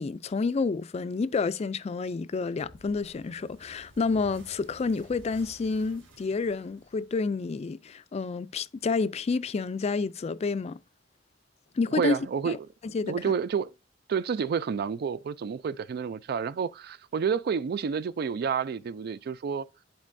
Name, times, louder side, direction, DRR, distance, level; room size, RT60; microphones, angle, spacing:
voice 1, 0.0-10.8 11.8-12.2 12.5-12.6 12.9-13.1, left 4 dB, 35° left, 0.3 m, -29 dB
sound 1, 2.6-7.7, equal, 80° right, 2.0 m, -53 dB
voice 2, 11.9-12.6 13.0-13.7 14.1-19.7, right 6 dB, 55° right, 0.3 m, -29 dB
10.5 x 4.5 x 2.6 m
head